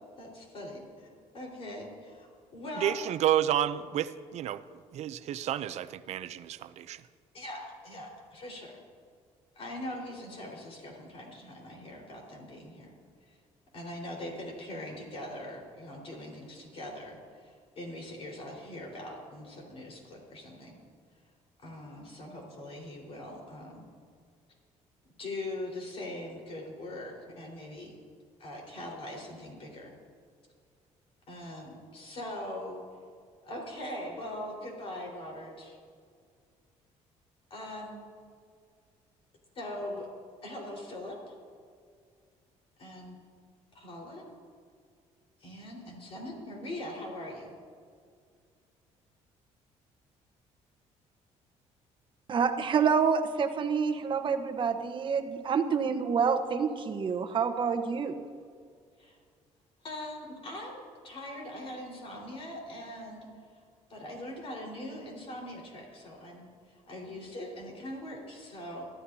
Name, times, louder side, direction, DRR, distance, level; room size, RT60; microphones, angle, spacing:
voice 1, 0.2-3.0 7.3-8.8 9.5-12.9 13.3-13.4 13.7-20.8 21.6-23.8 25.2-27.9 28.4-29.9 31.3-32.7 33.4-35.8 37.5-38.0 39.5-40.1 40.4-41.3 42.8-43.2 43.7-44.2 45.4-47.5 59.0-59.2 59.8-63.3 63.9-68.9, left 1 dB, 50° left, -1 dB, 4.6 m, -41 dB
voice 2, 2.8-4.6 4.9-7.0, right 11 dB, 65° right, 13 dB, 0.6 m, -30 dB
voice 3, 52.3-58.2, right 6 dB, 40° right, 6 dB, 1.1 m, -27 dB
24.5 x 13.0 x 2.8 m, 2.1 s
cardioid pair, 120°, 12 cm